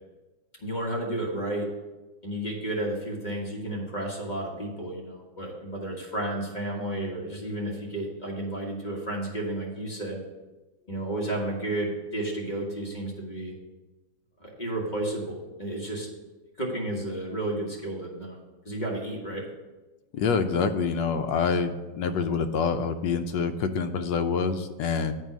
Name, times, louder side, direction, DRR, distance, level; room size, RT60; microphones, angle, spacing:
voice 1, 0.6-1.7 2.2-10.2 10.9-13.5 14.4-16.1 16.6-18.4 18.6-19.4, right 1 dB, 25° left, -3 dB, 1.4 m, -32 dB
voice 2, 20.1-21.7 22.0-25.2, left 5 dB, 75° left, 8 dB, 1.2 m, -26 dB
8.1 x 4.7 x 6.1 m, 1.1 s
omnidirectional pair, 2.2 m